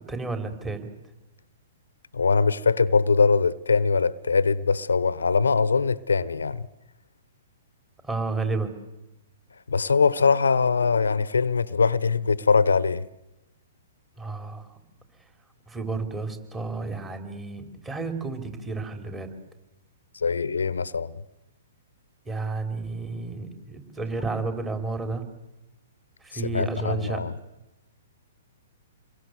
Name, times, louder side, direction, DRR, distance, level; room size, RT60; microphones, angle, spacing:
voice 1, 0.1-0.9 8.0-8.7 14.2-14.7 15.7-19.3 22.3-25.2 26.2-27.2, right 3 dB, 15° right, 4.0 m, -31 dB
voice 2, 2.1-6.7 9.7-13.1 20.1-21.1 26.3-27.3, left 4 dB, 80° left, 0.9 m, -22 dB
28.0 x 22.0 x 8.2 m
hypercardioid pair, 120°, 0 cm